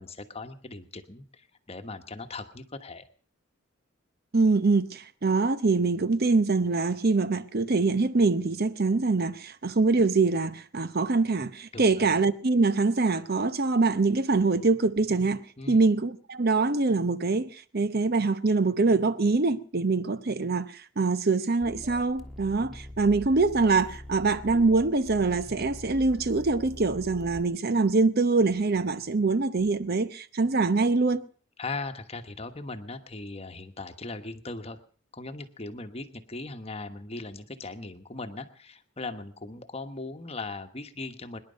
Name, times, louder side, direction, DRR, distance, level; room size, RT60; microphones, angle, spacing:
voice 1, 0.0-3.1 11.7-11.8 15.6-15.8 31.6-34.8 35.1-41.4, left 3 dB, 30° left, 1.2 m, -39 dB
voice 2, 4.3-31.2, right 3 dB, 50° right, 0.8 m, -24 dB
sound 1, 21.6-27.4, left 1 dB, ahead, 1.4 m, -43 dB
24.0 x 10.5 x 5.2 m
head